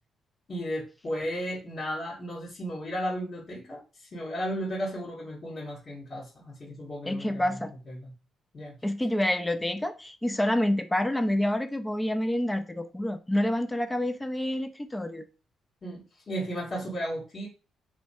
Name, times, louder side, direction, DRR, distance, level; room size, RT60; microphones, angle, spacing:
voice 1, 0.5-8.1 8.5-8.7 15.8-17.5, equal, 45° left, 1.5 m, -35 dB
voice 2, 7.1-7.7 8.8-15.2, left 1 dB, 15° left, 0.5 m, -28 dB
3.2 x 3.1 x 2.7 m
supercardioid pair, 65°, 0 cm